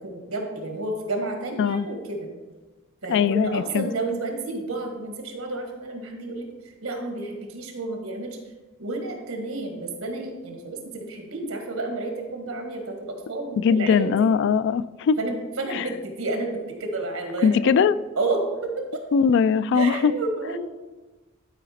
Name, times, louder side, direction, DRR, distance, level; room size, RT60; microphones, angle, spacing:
voice 1, 0.0-2.3 3.0-6.5 6.8-8.4 8.8-14.3 15.2-17.9 18.2-18.8 19.7-20.6, right 2 dB, 80° right, 3 dB, 1.6 m, -30 dB
voice 2, 3.1-3.9 13.6-15.2 15.7-15.9 17.4-18.0 19.1-20.1, left 6 dB, 60° left, 16 dB, 0.3 m, -20 dB
11.5 x 4.9 x 4.2 m, 1.2 s
head